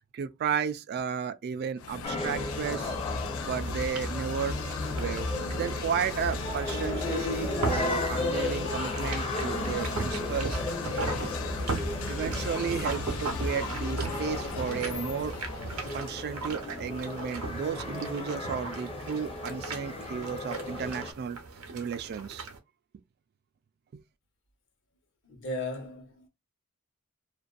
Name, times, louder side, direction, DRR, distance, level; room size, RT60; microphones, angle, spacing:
voice 1, 0.1-3.0 3.4-5.3 5.5-10.6 11.0-11.5 12.1-15.4 15.9-21.4 21.7-22.5, right 7 dB, 50° right, 0.3 m, -33 dB
sound 1, 1.8-16.5, left 3 dB, 80° left, 0.5 m, -36 dB
sound 2, 2.0-21.1, left 2 dB, 25° left, 0.7 m, -36 dB
sound 3, 3.4-22.6, right 3 dB, 85° right, 0.7 m, -39 dB
voice 2, 25.2-26.3, left 2 dB, 60° left, 1.0 m, -36 dB
2.5 x 2.2 x 2.3 m
head